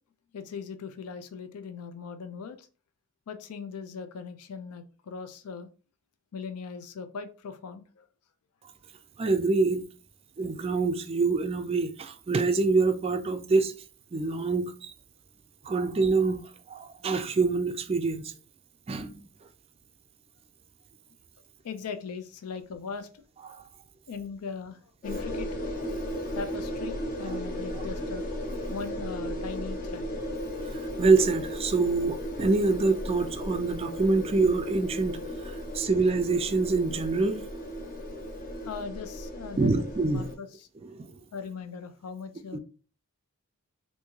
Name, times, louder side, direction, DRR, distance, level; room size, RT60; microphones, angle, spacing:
voice 1, 0.3-2.7 3.3-5.7 6.3-8.1 21.6-23.1 24.1-25.6 26.3-28.3 28.7-30.1 38.5-39.8 40.1-40.7 41.3-42.6, left 5 dB, 85° left, 0.4 m, -39 dB
voice 2, 9.2-9.9 10.4-13.7 14.1-14.9 15.6-18.3 18.9-19.3 23.5-23.6 27.2-27.4 30.6-37.4 39.6-40.3 40.8-41.1 42.5-42.6, right 3 dB, 25° right, 0.3 m, -26 dB
sound 1, 25.0-40.3, equal, 40° left, 0.7 m, -35 dB
3.5 x 2.6 x 3.0 m
head